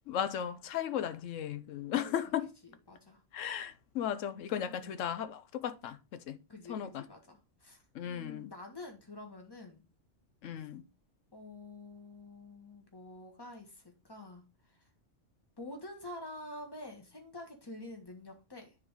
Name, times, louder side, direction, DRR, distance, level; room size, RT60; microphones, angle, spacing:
voice 1, 0.1-2.5 3.3-6.4 6.7-7.0 7.9-8.5 10.4-10.8, left 9 dB, 85° left, 1.1 m, -36 dB
voice 2, 2.6-3.2 4.7-5.0 6.5-9.8 10.6-10.7 11.3-14.9 15.6-18.8, left 2 dB, 20° left, 1.7 m, -48 dB
9.7 x 3.9 x 3.6 m
omnidirectional pair, 1.3 m